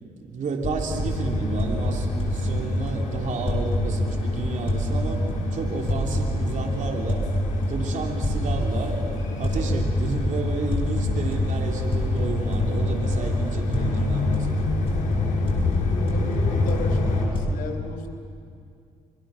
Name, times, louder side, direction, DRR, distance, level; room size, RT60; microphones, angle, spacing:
voice 1, 0.0-5.2 5.5-7.2 7.7-9.0 9.4-14.7, right 4 dB, 60° right, 1 dB, 3.2 m, -31 dB
sound 1, 0.6-17.4, left 1 dB, 40° left, 6.5 m, -26 dB
sound 2, 0.9-17.3, left 4 dB, 60° left, 5.9 m, -30 dB
voice 2, 16.0-18.1, left 4 dB, 80° left, 3 dB, 3.9 m, -34 dB
28.5 x 23.0 x 6.4 m, 2.4 s
supercardioid pair, 70°, 14 cm